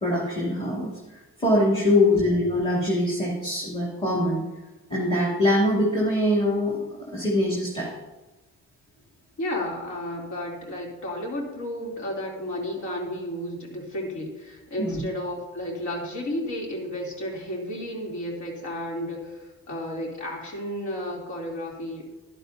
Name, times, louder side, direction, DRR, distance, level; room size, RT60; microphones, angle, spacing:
voice 1, 0.0-4.5 4.9-6.8 7.1-7.9 14.8-15.0, left 1 dB, 20° left, -5 dB, 2.6 m, -23 dB
voice 2, 1.9-2.2 9.4-22.1, left 1 dB, 70° left, -1 dB, 3.0 m, -32 dB
11.5 x 11.0 x 2.7 m, 1.1 s
cardioid pair, 90°, 30 cm